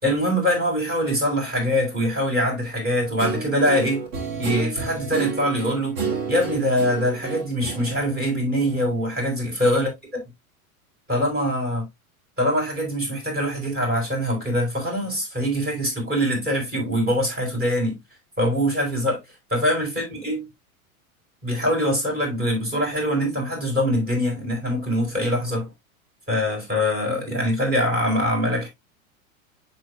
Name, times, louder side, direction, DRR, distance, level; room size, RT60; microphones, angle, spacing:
voice 1, 0.0-4.1 4.4-6.0 6.3-9.9 11.1-11.9 12.4-18.0 18.4-19.2 19.5-20.5 21.4-25.7 26.3-28.7, equal, 20° right, 4.5 m, -23 dB
Guitar, 3.2-9.0, right 5 dB, 45° right, 2.4 m, -31 dB
11.0 x 3.9 x 2.4 m
hypercardioid pair, 95°, 43 cm